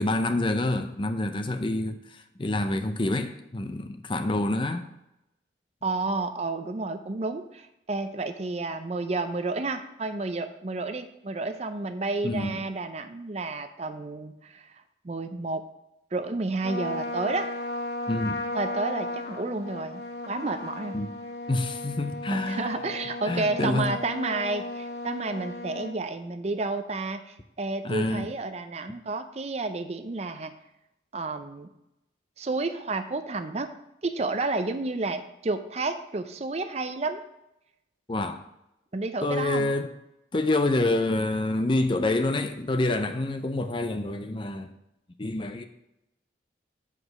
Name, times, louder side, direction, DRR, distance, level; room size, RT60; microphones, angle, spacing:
voice 1, 0.0-4.9 12.2-12.6 18.1-18.4 20.9-21.1 21.5-22.8 23.2-23.9 27.8-28.3 38.1-38.4 39.2-39.9 40.3-44.7 45.2-45.6, left 2 dB, 25° left, 8 dB, 0.5 m, -27 dB
voice 2, 5.8-14.7 15.0-15.6 16.1-17.5 18.5-21.0 22.3-30.5 31.1-31.7 32.4-33.7 34.0-37.2 38.9-39.7, right 3 dB, 35° right, 8 dB, 0.5 m, -31 dB
Trumpet, 16.6-26.0, left 2 dB, 60° left, 0.8 m, -35 dB
8.0 x 5.0 x 5.3 m, 0.88 s
head